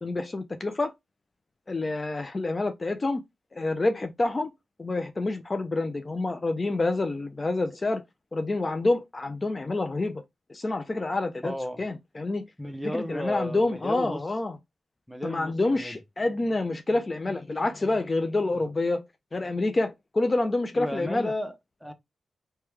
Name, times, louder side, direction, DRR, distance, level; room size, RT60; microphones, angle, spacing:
voice 1, 0.0-0.9 1.7-3.2 3.5-4.5 4.8-8.0 8.3-10.2 10.5-11.5 11.8-12.4 12.8-14.6 15.2-19.0 19.3-21.3, left 2 dB, 40° left, 0.4 m, -27 dB
voice 2, 11.4-11.8 12.6-14.2 15.1-16.0 18.5-18.6 20.7-21.9, left 1 dB, 5° left, 0.7 m, -34 dB
3.0 x 2.2 x 3.3 m
supercardioid pair, 45°, 0 cm